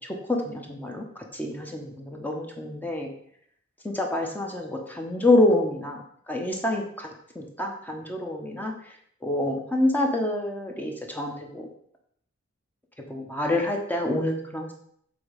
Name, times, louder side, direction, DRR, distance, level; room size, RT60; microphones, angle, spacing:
voice 1, 0.3-1.0 1.3-3.1 3.8-6.0 6.3-7.1 7.3-8.7 9.2-11.6 13.1-14.7, left 1 dB, 10° left, 1 dB, 1.0 m, -26 dB
6.9 x 4.2 x 5.2 m, 0.66 s
head